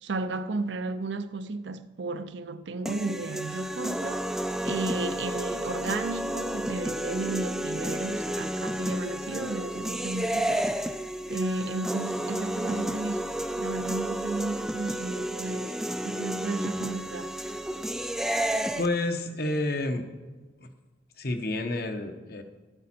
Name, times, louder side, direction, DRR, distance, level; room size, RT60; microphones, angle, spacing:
voice 1, 0.0-11.0 11.3-13.3 13.6-17.3, right 3 dB, 70° right, 0.6 m, -34 dB
sound 1, 2.9-18.9, right 1 dB, ahead, 0.3 m, -31 dB
voice 2, 18.8-20.0 20.6-20.7 21.2-22.4, left 2 dB, 55° left, 1.0 m, -29 dB
12.5 x 8.8 x 4.3 m
head